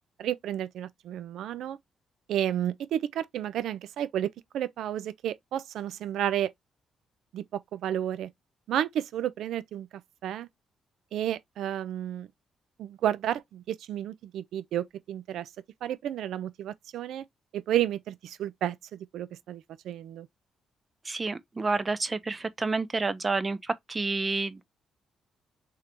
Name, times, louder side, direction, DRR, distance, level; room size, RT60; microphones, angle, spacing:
voice 1, 0.2-1.8 2.3-6.5 7.3-8.3 8.7-10.5 11.1-12.3 12.8-15.5 15.8-17.2 17.5-20.3, right 11 dB, 80° right, 0.3 m, -32 dB
voice 2, 21.1-23.6 23.9-24.6, right 3 dB, 25° right, 0.5 m, -29 dB
3.9 x 3.2 x 2.8 m
cardioid pair, 105°, 0 cm